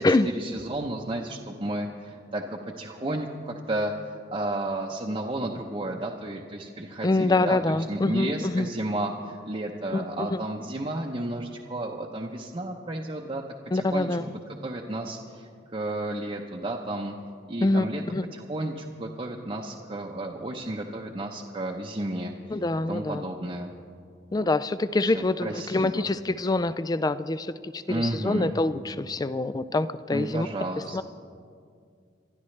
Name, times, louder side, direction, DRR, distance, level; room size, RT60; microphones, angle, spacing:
voice 1, 0.0-13.4 13.7-14.1 14.6-17.2 17.5-18.0 18.3-23.7 25.0-26.1 27.9-28.6 30.1-31.0, right 1 dB, 30° right, -1 dB, 0.8 m, -32 dB
voice 2, 7.0-8.7 9.9-10.4 13.7-14.3 17.6-17.9 18.1-18.3 22.5-23.2 24.3-30.5 30.9-31.0, left 2 dB, 20° left, 14 dB, 0.4 m, -25 dB
26.5 x 12.5 x 3.3 m, 2.3 s
head